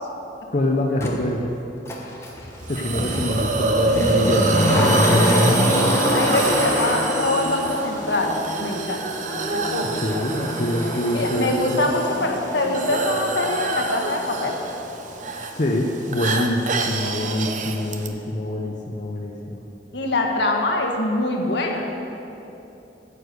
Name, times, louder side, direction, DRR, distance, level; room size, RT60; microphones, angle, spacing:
voice 1, 0.5-1.5 2.7-5.7 10.0-11.8 15.6-19.6, left 1 dB, 45° left, 0 dB, 0.7 m, -25 dB
Motor vehicle (road), 1.0-1.1 1.9-14.8 15.1-15.2, equal, 15° left, 1.1 m, -25 dB
Hiss, 2.7-18.1, right 3 dB, 45° right, 0.7 m, -27 dB
voice 2, 6.1-9.0 9.5-10.2 10.4-10.5 11.1-14.5 19.9-21.9, left 2 dB, 75° left, 1 dB, 1.4 m, -24 dB
9.4 x 8.1 x 6.7 m, 3.0 s
head